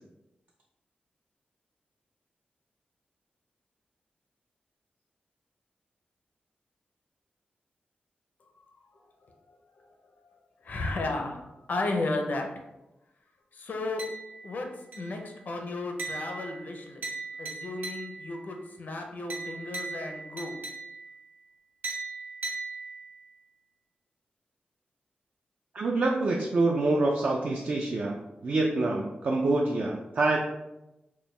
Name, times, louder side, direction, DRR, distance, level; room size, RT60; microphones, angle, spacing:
voice 1, 10.6-12.6 13.5-14.1 14.4-14.7 15.0-17.0 17.4-20.6, left 2 dB, 55° left, 3 dB, 0.5 m, -33 dB
sound 1, 14.0-14.6 14.9-15.3 16.0-18.4 19.3-21.2 21.8-23.3, right 3 dB, 70° right, 0.7 m, -38 dB
voice 2, 25.7-28.2 28.4-30.4, right 2 dB, 45° right, -1 dB, 0.3 m, -26 dB
4.3 x 2.2 x 3.2 m, 0.94 s
wide cardioid pair, 175°, 3 cm